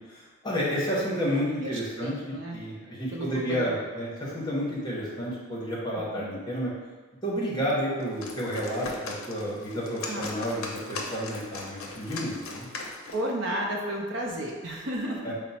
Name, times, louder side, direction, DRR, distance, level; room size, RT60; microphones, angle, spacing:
voice 1, 0.1-6.7 7.2-12.7 15.2-15.3, equal, 20° left, -6 dB, 0.8 m, -31 dB
voice 2, 1.6-2.6 3.1-3.7 6.1-6.3 10.1-10.2 13.1-15.3, right 1 dB, 55° right, 0 dB, 0.6 m, -32 dB
sound 1, 8.0-13.3, left 3 dB, 70° left, 0.5 m, -39 dB
4.4 x 2.0 x 4.1 m, 1.4 s
head